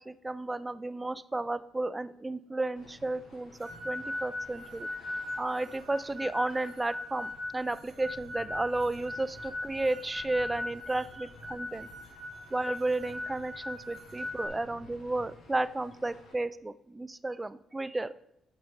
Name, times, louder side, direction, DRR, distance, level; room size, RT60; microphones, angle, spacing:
voice 1, 0.0-4.9 5.4-11.9 12.5-18.1, right 2 dB, 15° right, 16 dB, 0.4 m, -33 dB
sound 1, 2.7-16.3, left 2 dB, 60° left, 2.5 m, -54 dB
sound 2, 3.6-14.5, left 1 dB, 55° right, 2.3 m, -40 dB
6.2 x 6.1 x 6.5 m, 0.78 s
cardioid pair, 90°, 0 cm